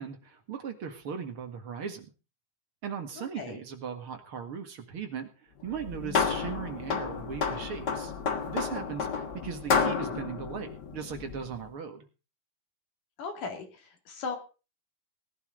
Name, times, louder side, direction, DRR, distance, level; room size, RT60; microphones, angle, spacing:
voice 1, 0.0-2.1 2.8-8.1 8.5-12.0, right 7 dB, 45° right, 5 dB, 2.4 m, -38 dB
voice 2, 3.2-3.6 6.0-6.3 13.2-14.4, left 4 dB, 75° left, 4 dB, 4.0 m, -38 dB
sound 1, 5.7-11.6, left 5 dB, 45° left, 1.4 m, -31 dB
19.0 x 11.5 x 3.9 m, 0.33 s
omnidirectional pair, 3.7 m